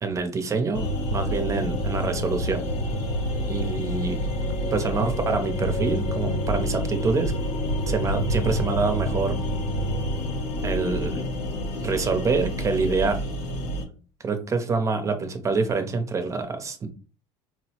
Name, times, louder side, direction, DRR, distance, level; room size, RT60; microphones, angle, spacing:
voice 1, 0.0-2.6 3.5-4.3 4.7-7.3 7.9-9.4 10.6-11.3 11.7-13.2 14.2-16.9, right 4 dB, 25° right, 7 dB, 0.6 m, -26 dB
sound 1, 0.7-13.9, equal, 65° left, 0.7 m, -28 dB
4.1 x 2.0 x 2.9 m, 0.38 s
supercardioid pair, 120°, 12 cm